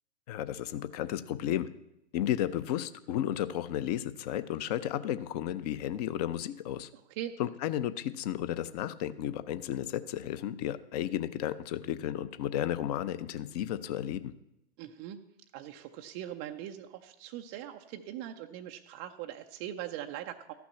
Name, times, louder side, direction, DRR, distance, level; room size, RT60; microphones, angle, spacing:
voice 1, 0.3-1.7 2.1-6.9 7.4-14.3, left 11 dB, 35° left, 14 dB, 0.6 m, -33 dB
voice 2, 6.9-7.3 14.8-15.2 15.5-20.5, right 11 dB, 20° right, 4 dB, 0.3 m, -41 dB
13.0 x 6.1 x 7.1 m, 0.84 s
hypercardioid pair, 120°, 34 cm